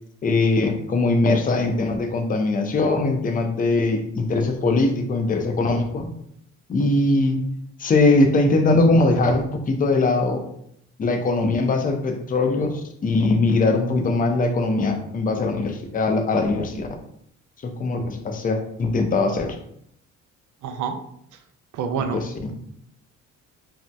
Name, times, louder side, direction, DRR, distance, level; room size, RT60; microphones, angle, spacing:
voice 1, 0.2-6.1 6.7-7.4 7.8-10.4 11.0-16.9 17.6-19.6 22.1-22.5, left 2 dB, 30° left, 4 dB, 0.5 m, -21 dB
voice 2, 20.6-21.0 21.7-22.2, right 6 dB, 75° right, 6 dB, 0.5 m, -26 dB
2.7 x 2.0 x 3.3 m, 0.71 s
cardioid pair, 90°, 30 cm